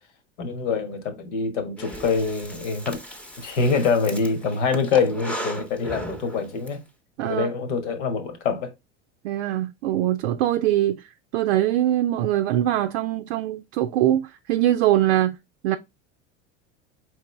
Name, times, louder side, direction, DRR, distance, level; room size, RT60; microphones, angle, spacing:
voice 1, 0.4-3.0 3.4-6.8 7.2-8.7, left 5 dB, 80° left, 1.3 m, -25 dB
Breathing, 1.8-6.7, right 1 dB, 5° left, 0.8 m, -37 dB
voice 2, 7.2-7.5 9.2-11.0 11.3-15.3 15.6-15.8, right 13 dB, 75° right, 0.5 m, -22 dB
4.7 x 3.2 x 3.2 m
hypercardioid pair, 95°, 35 cm